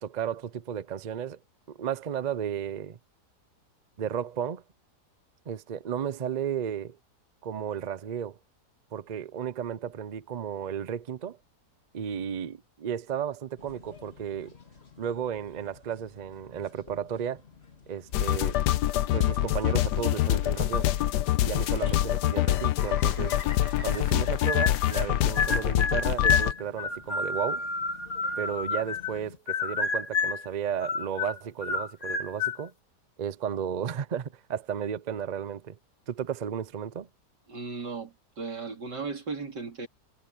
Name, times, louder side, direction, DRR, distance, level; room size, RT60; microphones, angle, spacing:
voice 1, 0.0-1.4 1.7-3.0 4.0-4.6 5.5-7.0 7.4-8.4 8.9-11.4 11.9-14.5 15.0-17.4 17.9-18.6 19.1-20.9 21.4-23.4 23.8-27.7 28.4-32.7 33.2-35.8 36.1-37.1, right 8 dB, 60° right, 0.4 m, -33 dB
sound 1, 13.6-29.4, left 5 dB, 40° left, 2.2 m, -50 dB
sound 2, 18.1-26.5, left 13 dB, 80° left, 1.2 m, -25 dB
sound 3, 24.4-25.1 25.4-29.2 29.5-30.5 30.8-32.6, left 4 dB, 55° left, 2.4 m, -29 dB
voice 2, 37.5-39.9, right 4 dB, 85° right, 4.0 m, -36 dB
omnidirectional pair, 1.8 m